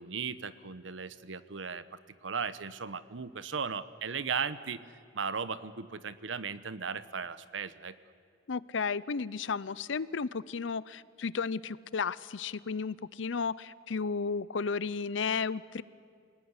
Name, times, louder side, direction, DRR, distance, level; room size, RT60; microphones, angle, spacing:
voice 1, 0.0-4.8 5.1-7.9, right 6 dB, 80° right, 14 dB, 1.0 m, -36 dB
voice 2, 8.5-15.8, left 5 dB, 80° left, 19 dB, 0.6 m, -33 dB
28.0 x 18.5 x 9.7 m, 2.2 s
head